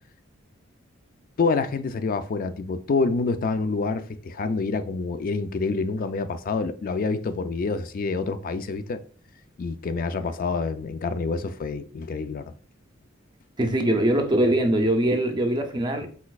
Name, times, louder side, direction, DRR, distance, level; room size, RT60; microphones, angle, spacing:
voice 1, 1.4-9.0 9.6-12.5, left 4 dB, 45° left, 0.4 m, -27 dB
voice 2, 13.6-16.1, right 1 dB, 20° right, 0.5 m, -22 dB
4.2 x 4.1 x 2.3 m
head